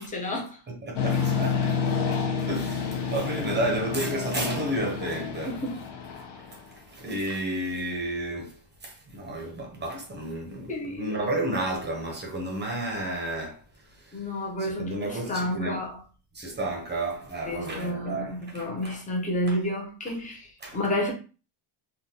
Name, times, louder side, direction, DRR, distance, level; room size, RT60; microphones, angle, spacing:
voice 1, 0.0-0.6 5.5-5.8 10.7-11.3 14.1-16.0 17.5-21.1, left 1 dB, 15° left, 0.6 m, -30 dB
voice 2, 0.7-2.0 2.5-5.6 6.5-6.6 6.9-8.6 8.8-13.6 13.9-14.2 14.6-15.8 16.3-19.0 19.5-19.6 20.6-20.8, right 1 dB, 25° right, 0.7 m, -32 dB
sound 1, 1.0-6.7, left 6 dB, 60° left, 0.9 m, -29 dB
3.6 x 2.2 x 2.7 m
cardioid pair, 155°, 46 cm